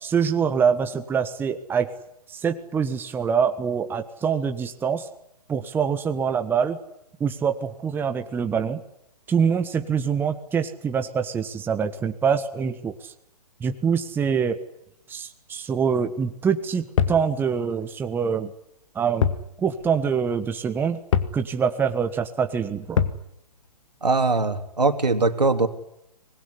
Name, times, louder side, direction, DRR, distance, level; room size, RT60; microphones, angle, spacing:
voice 1, 0.0-1.9 2.3-5.1 5.5-6.8 7.2-8.8 9.3-12.9 13.6-14.6 15.1-18.5 18.9-19.3 19.6-21.0 21.3-23.0, right 6 dB, 10° right, 7 dB, 1.3 m, -24 dB
sound 1, 17.0-17.3 19.2-19.5 19.8-19.9 21.1-21.4 23.0-23.2, left 8 dB, 50° left, 2.0 m, -22 dB
voice 2, 24.0-25.7, right 3 dB, 85° right, 7 dB, 3.1 m, -21 dB
24.5 x 21.0 x 9.9 m, 0.78 s
figure-of-eight pair, 130°, 21 cm